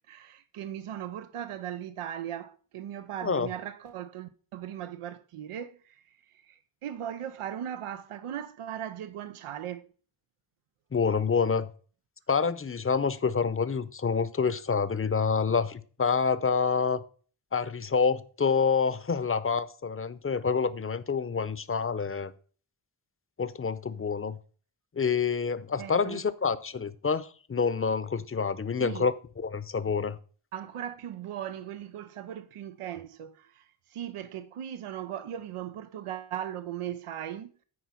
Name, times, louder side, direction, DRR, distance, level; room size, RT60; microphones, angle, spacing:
voice 1, 0.0-9.9 25.8-26.2 28.8-29.1 30.5-37.5, right 10 dB, 90° right, 0.6 m, -38 dB
voice 2, 10.9-11.7 12.3-17.0 17.5-22.3 23.4-24.4 25.0-29.1 29.4-30.2, left 5 dB, 25° left, 0.7 m, -27 dB
9.6 x 4.5 x 5.7 m
cardioid pair, 65°, 49 cm